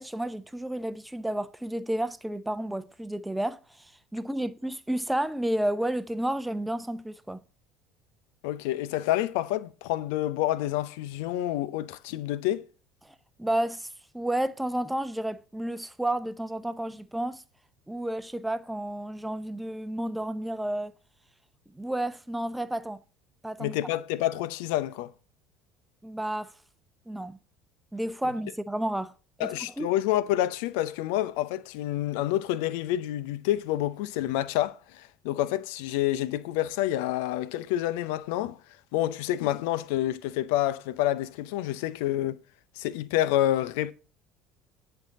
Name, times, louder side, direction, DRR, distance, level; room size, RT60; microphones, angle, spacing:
voice 1, 0.0-3.9 4.1-7.4 13.0-13.9 14.1-17.4 17.9-20.9 21.7-23.0 23.4-23.8 26.0-26.5 27.1-27.4 27.9-29.1 29.4-29.9, right 1 dB, 5° right, 0.8 m, -31 dB
voice 2, 8.4-12.7 23.6-25.1 29.4-38.6 38.9-42.4 42.8-43.9, left 13 dB, 60° left, 0.6 m, -28 dB
10.5 x 4.8 x 7.3 m
figure-of-eight pair, 60°, 0 cm